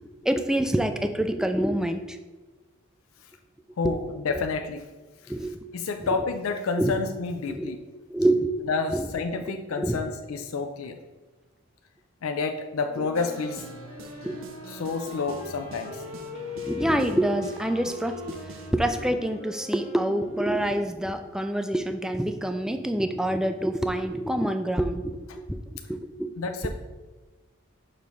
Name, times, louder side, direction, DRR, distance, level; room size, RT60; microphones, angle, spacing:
voice 1, 0.0-2.2 3.8-3.9 5.3-5.6 6.1-6.2 6.8-7.0 7.5-7.7 8.1-8.5 8.9-10.0 14.2-14.4 16.6-18.4 18.7-26.3, right 1 dB, 5° right, 7 dB, 0.3 m, -27 dB
voice 2, 3.8-4.8 5.7-7.8 8.7-11.0 12.2-13.6 14.7-16.0 26.4-26.7, left 4 dB, 85° left, 6 dB, 0.5 m, -29 dB
Wind instrument woodwind instrument, 12.8-21.2, left 4 dB, 35° left, 1.3 m, -41 dB
sound 1, 13.1-18.7, right 2 dB, 65° right, 0.6 m, -44 dB
6.5 x 3.1 x 5.3 m, 1.3 s
head